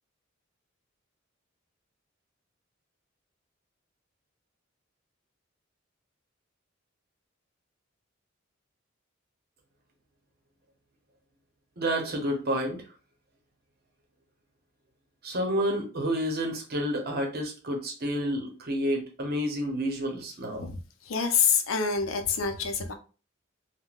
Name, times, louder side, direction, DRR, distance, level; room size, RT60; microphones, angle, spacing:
voice 1, 11.8-12.8 15.2-20.7, equal, 50° right, 0.8 m, -29 dB
voice 2, 20.6-22.9, left 6 dB, 80° left, 0.5 m, -27 dB
3.6 x 2.1 x 2.3 m
head